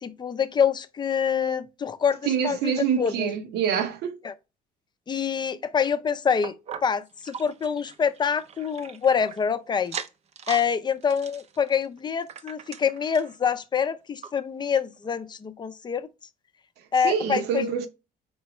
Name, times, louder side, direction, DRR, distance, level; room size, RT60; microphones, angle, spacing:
voice 1, 0.0-2.7 3.0-3.3 4.2-4.3 5.1-6.6 6.8-10.0 10.5-16.1 16.9-17.6, left 7 dB, 25° left, 0.5 m, -26 dB
voice 2, 2.2-4.2 17.0-17.9, right 7 dB, 80° right, 0.8 m, -26 dB
sound 1, 6.4-9.4 9.8-10.7 11.0-13.4 13.8-13.9 14.2-14.3 15.0-15.1, right 7 dB, 40° right, 0.5 m, -40 dB
4.5 x 3.3 x 3.0 m
cardioid pair, 110°, 17 cm